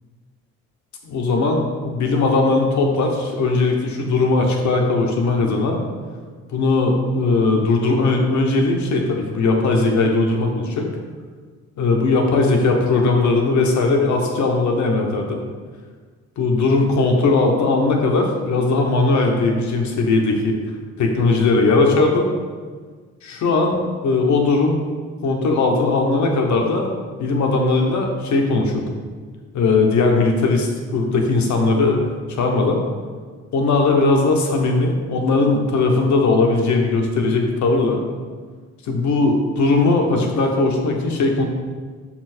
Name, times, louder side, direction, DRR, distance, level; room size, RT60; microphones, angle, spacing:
voice 1, 1.0-5.8 6.5-10.9 11.8-15.4 16.4-20.6 21.0-22.3 23.2-24.8 25.2-26.9 27.2-28.9 29.5-32.1 32.4-32.8 33.5-38.0 38.9-41.4, left 3 dB, 70° left, 2 dB, 1.1 m, -18 dB
5.9 x 4.3 x 4.4 m, 1.6 s
cardioid pair, 90°, 30 cm